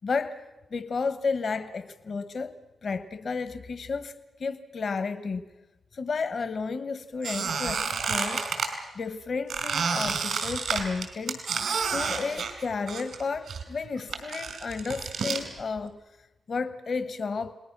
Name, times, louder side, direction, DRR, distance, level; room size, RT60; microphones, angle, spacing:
voice 1, 0.0-0.4 0.7-4.1 4.4-5.5 5.9-8.5 8.9-11.4 11.9-16.0 16.5-17.5, left 4 dB, 65° left, 11 dB, 1.2 m, -32 dB
Squeak, 7.2-8.7 9.5-13.2 13.5-15.4, right 5 dB, 90° right, 4.0 m, -30 dB
30.0 x 20.0 x 6.1 m, 1.0 s
cardioid pair, 60°, 0 cm